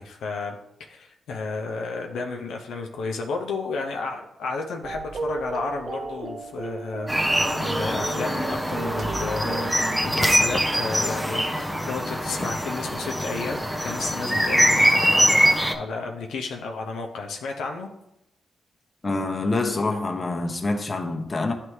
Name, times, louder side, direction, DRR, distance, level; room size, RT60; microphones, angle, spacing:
voice 1, 0.0-17.9, left 4 dB, 85° left, 0.6 m, -32 dB
sound 1, 4.8-10.4, right 3 dB, 50° right, 0.5 m, -34 dB
sound 2, 7.1-15.7, equal, 5° right, 0.7 m, -23 dB
voice 2, 19.0-21.5, left 2 dB, 30° left, 0.9 m, -26 dB
9.5 x 3.3 x 3.1 m
cardioid pair, 60°, 0 cm